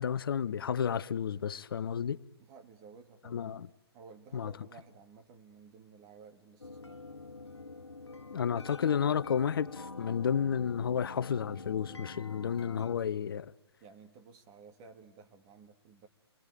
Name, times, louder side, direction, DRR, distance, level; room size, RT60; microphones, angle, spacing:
voice 1, 0.0-2.2 3.3-3.7 4.3-4.5 8.3-13.5, left 7 dB, 55° left, 0.9 m, -31 dB
voice 2, 2.4-3.7 3.9-7.1 13.8-16.1, right 5 dB, 25° right, 2.3 m, -55 dB
sound 1, 6.6-13.0, left 3 dB, 85° left, 1.4 m, -46 dB
29.0 x 22.0 x 9.2 m
figure-of-eight pair, 135°, 14 cm